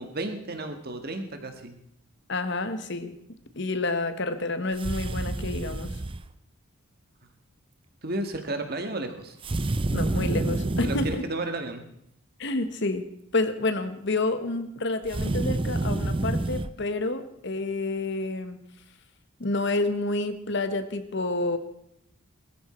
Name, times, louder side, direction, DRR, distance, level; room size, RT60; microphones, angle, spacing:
voice 1, 0.0-1.8 8.0-9.4 10.8-11.8, right 2 dB, 45° right, 6 dB, 1.7 m, -33 dB
voice 2, 2.3-5.9 9.9-11.3 12.4-13.1 13.3-18.6 19.4-21.6, left 2 dB, 55° left, 10 dB, 1.2 m, -29 dB
sound 1, 4.7-6.3 9.4-11.2 15.0-16.7, right 2 dB, 25° right, 0.5 m, -28 dB
20.5 x 13.5 x 4.4 m, 0.73 s
head